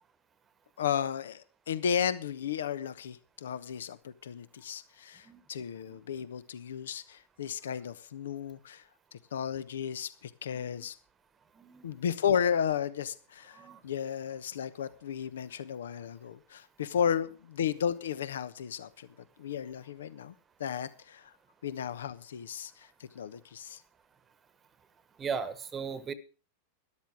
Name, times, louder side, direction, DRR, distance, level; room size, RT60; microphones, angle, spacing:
voice 1, 0.8-8.8 9.1-10.9 11.8-19.1 19.4-20.3 20.6-21.3 21.6-23.8, left 8 dB, 65° left, 15 dB, 1.0 m, -34 dB
voice 2, 10.5-10.9 11.6-11.9 13.5-13.8 25.2-26.1, right 6 dB, 20° right, 16 dB, 1.2 m, -37 dB
13.0 x 11.5 x 5.0 m, 0.35 s
figure-of-eight pair, 90°, 0 cm